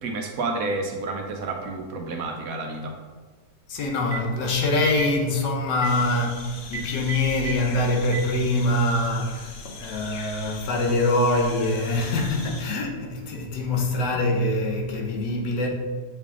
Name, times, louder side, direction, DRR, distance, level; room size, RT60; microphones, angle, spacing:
voice 1, 0.0-2.9, right 3 dB, 70° right, 0.9 m, -30 dB
voice 2, 3.7-15.7, left 2 dB, 85° left, 1.5 m, -24 dB
Telephone, 4.1-4.3 4.9-5.1 5.7-5.9 6.6-7.5 8.0-8.2, right 9 dB, 35° right, 0.3 m, -32 dB
sound 1, 5.8-12.6, left 4 dB, 65° left, 1.1 m, -41 dB
7.4 x 3.5 x 3.6 m
omnidirectional pair, 1.8 m